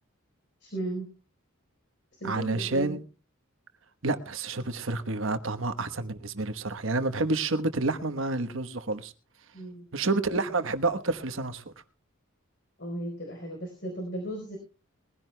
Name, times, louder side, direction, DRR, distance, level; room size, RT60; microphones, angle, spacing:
voice 1, 0.6-1.1 2.1-3.0 9.5-9.9 12.8-14.6, right 1 dB, 55° left, 4.3 m, -36 dB
voice 2, 2.2-3.0 4.0-9.1 9.9-11.6, right 3 dB, 65° right, 1.2 m, -29 dB
21.5 x 15.5 x 2.2 m
head